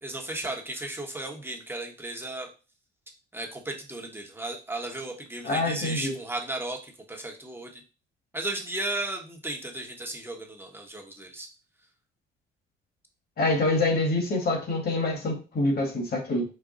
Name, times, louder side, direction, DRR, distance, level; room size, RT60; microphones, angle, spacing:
voice 1, 0.0-2.5 3.3-7.8 8.3-11.5, right 2 dB, 10° right, 1 dB, 1.0 m, -35 dB
voice 2, 5.4-6.1 13.4-16.4, left 2 dB, 50° left, 1 dB, 1.7 m, -26 dB
5.0 x 2.2 x 3.8 m, 0.33 s
cardioid pair, 90°, 20 cm